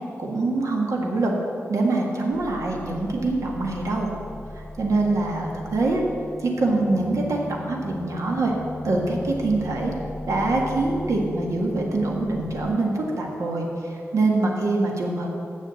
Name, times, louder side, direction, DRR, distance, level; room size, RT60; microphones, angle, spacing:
voice 1, 0.2-1.3 1.7-4.1 4.8-6.0 6.4-8.5 8.8-9.9 10.3-15.3, right 2 dB, 75° right, 0 dB, 1.7 m, -24 dB
sound 1, 2.3-12.7, left 1 dB, 90° left, 0.9 m, -37 dB
7.4 x 7.2 x 8.2 m, 2.7 s
wide cardioid pair, 120°, 5 cm